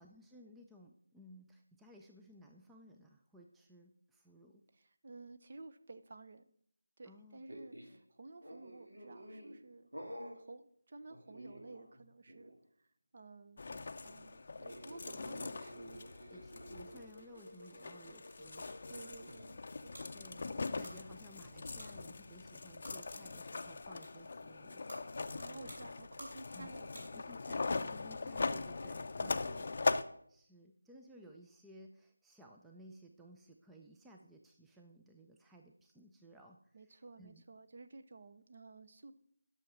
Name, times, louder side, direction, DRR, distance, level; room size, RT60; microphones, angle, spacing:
voice 1, 0.0-4.6 7.0-7.4 16.3-19.4 20.1-25.8 26.5-26.7 27.1-29.5 30.3-37.4, equal, 5° right, 1 dB, 0.4 m, -58 dB
voice 2, 4.8-6.4 7.0-9.9 10.2-12.6 13.1-16.3 18.9-20.0 25.3-27.4 29.2-29.7 36.7-39.1, right 3 dB, 40° right, 10 dB, 0.7 m, -54 dB
sound 1, 7.5-8.0 8.4-9.6 9.9-10.4 11.1-12.0 12.3-12.5 14.6-19.4, equal, 80° right, 2.6 m, -51 dB
sound 2, 13.6-30.0, left 3 dB, 45° left, 0.5 m, -41 dB
sound 3, 19.2-27.5, equal, 60° right, 4.2 m, -57 dB
10.5 x 6.5 x 5.8 m, 0.67 s
figure-of-eight pair, 170°, 0 cm